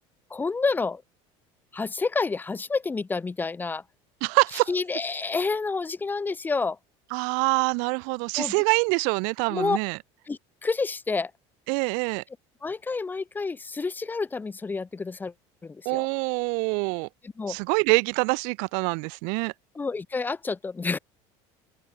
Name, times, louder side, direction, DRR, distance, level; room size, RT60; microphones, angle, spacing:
voice 1, 0.3-1.0 1.7-3.8 4.7-6.8 8.4-8.5 9.5-9.8 10.3-11.3 12.6-15.3 15.6-16.1 17.2-17.6 19.7-21.0, left 4 dB, 15° left, 5.1 m, -29 dB
voice 2, 4.2-4.7 7.1-10.0 11.7-12.2 15.8-17.1 17.5-19.5, right 40 dB or more, 75° right, 3.1 m, -25 dB
cardioid pair, 150°, 13 cm